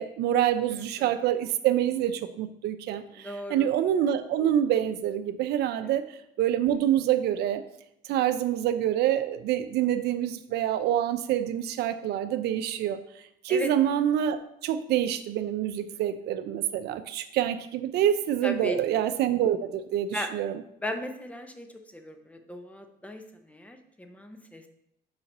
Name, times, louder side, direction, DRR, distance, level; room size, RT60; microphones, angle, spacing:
voice 1, 0.0-6.0 6.4-7.6 8.0-13.0 13.4-14.4 14.6-20.6, right 11 dB, 80° right, 10 dB, 0.6 m, -26 dB
voice 2, 0.8-1.1 3.1-3.7 13.5-13.7 18.4-18.8 20.1-20.3 20.8-21.7 21.9-24.6, left 1 dB, 10° left, 6 dB, 0.8 m, -36 dB
5.7 x 5.0 x 5.4 m, 0.78 s
cardioid pair, 110°, 17 cm